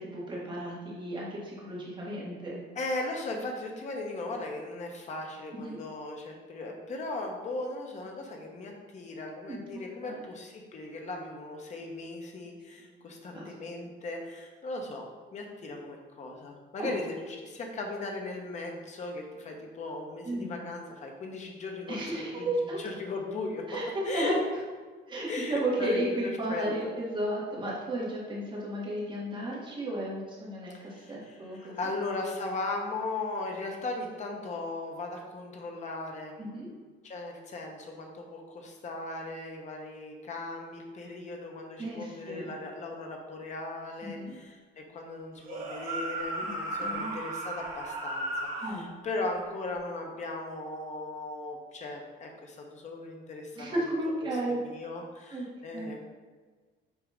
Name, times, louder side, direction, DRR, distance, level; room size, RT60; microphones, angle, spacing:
voice 1, 0.0-2.6 5.5-5.8 9.5-10.1 12.8-13.5 16.8-17.0 20.2-20.6 21.9-22.8 23.7-24.3 25.1-31.7 36.4-36.7 41.8-42.5 44.0-44.3 46.4-46.5 46.8-47.2 48.6-48.9 53.5-54.6 55.3-55.4 55.7-55.9, right 1 dB, 25° right, -5 dB, 1.6 m, -34 dB
voice 2, 2.7-23.6 24.0-24.4 25.3-26.7 30.9-36.4 37.0-53.8 54.5-56.0, left 2 dB, 35° left, 2 dB, 1.0 m, -37 dB
sound 1, 45.4-48.8, right 2 dB, 45° right, 1.7 m, -35 dB
8.0 x 2.8 x 5.0 m, 1.4 s
cardioid pair, 170°, 20 cm